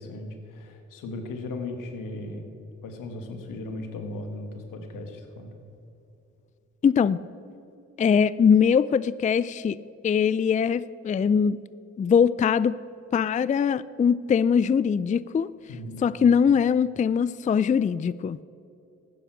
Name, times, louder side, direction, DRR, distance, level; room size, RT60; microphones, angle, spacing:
voice 1, 0.0-2.5 2.8-5.5 15.7-16.1, left 2 dB, 80° left, 5 dB, 1.7 m, -37 dB
voice 2, 6.8-7.2 8.0-9.8 10.0-11.6 12.0-12.8 13.1-15.5 16.0-18.4, left 7 dB, 25° left, 18 dB, 0.4 m, -22 dB
13.5 x 10.0 x 6.1 m, 2.7 s
supercardioid pair, 45°, 32 cm